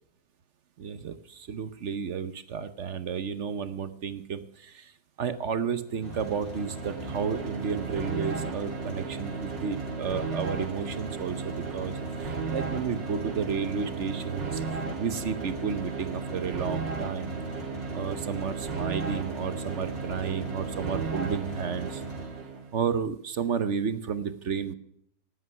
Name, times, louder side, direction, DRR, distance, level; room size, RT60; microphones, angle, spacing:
voice 1, 0.8-4.9 5.2-14.6 15.0-17.4 17.9-22.0 22.7-24.7, right 6 dB, 50° right, 12 dB, 0.9 m, -32 dB
sound 1, 5.9-22.7, right 4 dB, 75° right, 2.3 m, -35 dB
sound 2, 6.0-22.3, equal, 45° left, 3.8 m, -44 dB
18.5 x 8.4 x 5.7 m, 0.70 s
omnidirectional pair, 2.0 m